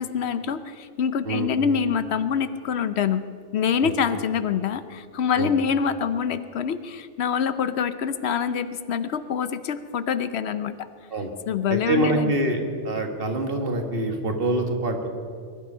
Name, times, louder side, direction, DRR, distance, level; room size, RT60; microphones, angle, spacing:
voice 1, 0.0-3.2 3.5-10.8 11.5-12.4, left 7 dB, 70° left, 12 dB, 0.9 m, -25 dB
voice 2, 11.7-15.1, right 2 dB, 55° right, 4 dB, 1.7 m, -25 dB
21.5 x 11.5 x 5.5 m, 2.3 s
omnidirectional pair, 1.2 m